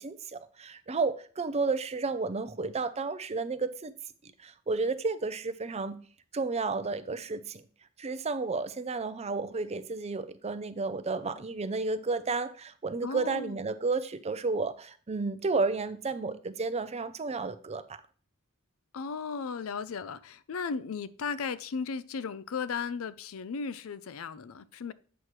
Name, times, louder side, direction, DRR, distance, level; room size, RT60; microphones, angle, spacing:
voice 1, 0.0-3.9 4.4-6.0 6.3-7.6 8.0-17.8, right 3 dB, 30° right, 0.5 m, -32 dB
voice 2, 13.0-13.6 18.9-24.9, left 5 dB, 75° left, 0.5 m, -36 dB
8.1 x 6.0 x 3.2 m
head